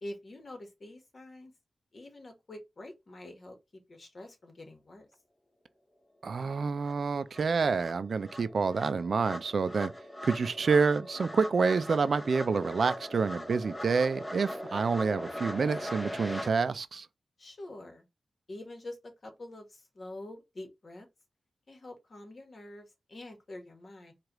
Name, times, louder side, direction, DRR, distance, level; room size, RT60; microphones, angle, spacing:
voice 1, 0.0-1.5 1.9-5.1 17.4-18.0 18.5-21.1 21.7-24.1, left 1 dB, 55° left, 1.4 m, -46 dB
voice 2, 6.2-9.9 10.2-17.1, right 5 dB, 65° right, 0.4 m, -28 dB
sound 1, 6.4-6.5 6.8-16.5, equal, 10° left, 0.7 m, -40 dB
4.7 x 2.5 x 3.0 m
cardioid pair, 60°, 0 cm